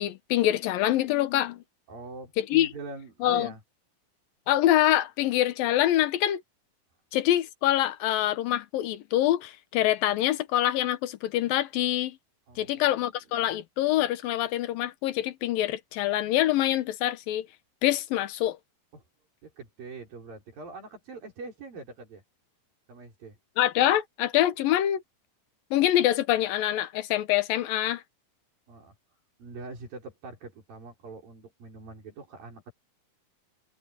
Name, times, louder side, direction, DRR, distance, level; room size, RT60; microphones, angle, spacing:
voice 1, 0.0-1.6 2.4-2.7 3.2-3.5 4.5-6.4 7.1-12.2 12.6-17.5 17.8-18.6 23.6-25.0 25.7-28.0, left 13 dB, 85° left, 2.8 m, -25 dB
voice 2, 1.9-3.6 12.5-12.9 18.9-19.0 19.4-22.2 22.9-23.4 28.7-28.9 29.4-32.7, right 3 dB, 80° right, 7.7 m, -43 dB
omnidirectional pair, 4.0 m